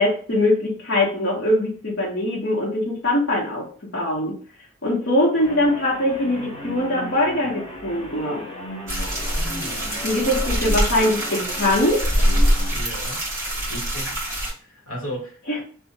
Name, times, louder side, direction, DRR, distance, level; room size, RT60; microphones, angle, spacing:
voice 1, 0.0-3.7 3.9-4.3 4.8-8.4 10.0-12.2 15.5-15.6, left 1 dB, 55° left, 1.1 m, -22 dB
sound 1, 5.4-12.8, left 1 dB, 25° left, 0.7 m, -36 dB
sound 2, 8.9-14.5, equal, 15° right, 1.5 m, -24 dB
voice 2, 9.3-10.2 12.7-13.2 13.7-14.2 14.6-15.6, equal, 85° left, 1.2 m, -36 dB
2.7 x 2.3 x 4.0 m
head